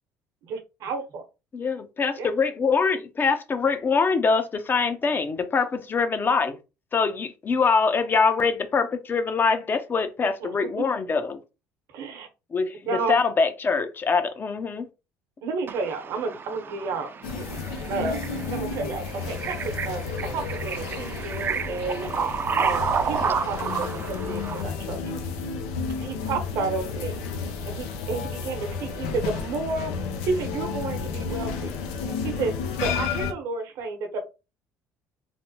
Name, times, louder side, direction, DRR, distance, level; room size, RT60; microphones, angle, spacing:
voice 1, 0.5-1.2 2.2-2.3 10.4-10.9 11.9-12.3 12.9-13.2 15.4-17.1 17.3-17.4 17.9-18.2 18.5-20.0 20.3-22.1 22.6-25.0 26.0-27.2 27.6-29.9 30.2-31.7 32.2-34.2, right 4 dB, 70° right, 0.9 m, -31 dB
voice 2, 1.5-6.6 6.9-11.4 12.5-12.8 13.1-14.9, left 5 dB, 35° left, 0.6 m, -24 dB
voice 3, 15.7-24.7, right 6 dB, 35° right, 0.5 m, -31 dB
sound 1, 17.2-33.3, left 5 dB, 90° left, 0.5 m, -32 dB
3.3 x 2.1 x 2.7 m
supercardioid pair, 75°, 6 cm